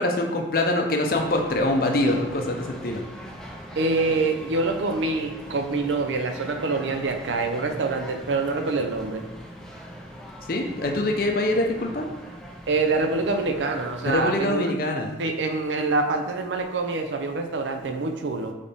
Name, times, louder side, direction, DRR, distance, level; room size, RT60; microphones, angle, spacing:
voice 1, 0.0-3.0 10.5-12.1 14.1-15.2, left 1 dB, 50° left, 2 dB, 0.5 m, -24 dB
sound 1, 1.1-14.4, equal, 5° left, 0.3 m, -41 dB
voice 2, 3.8-9.2 12.7-14.7 15.2-18.5, right 3 dB, 85° right, 5 dB, 0.5 m, -25 dB
4.1 x 3.2 x 3.5 m, 1.0 s
head